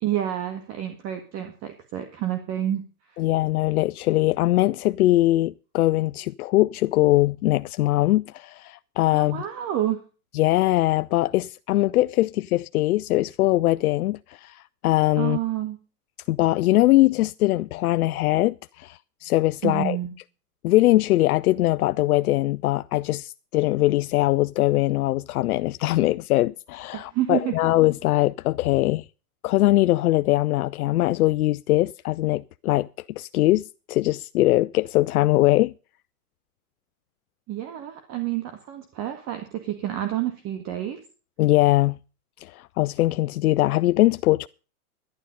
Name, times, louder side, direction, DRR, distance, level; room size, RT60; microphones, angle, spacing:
voice 1, 0.0-3.2 9.1-10.0 15.2-15.8 19.6-20.1 26.9-27.5 37.5-41.0, right 12 dB, 35° right, 1.9 m, -29 dB
voice 2, 3.2-9.4 10.3-15.4 16.3-20.0 20.6-29.0 29.4-32.9 33.2-33.6 33.9-35.7 41.4-42.0 42.4-44.5, left 17 dB, 70° left, 0.5 m, -21 dB
12.0 x 11.5 x 5.4 m
hypercardioid pair, 130°, 46 cm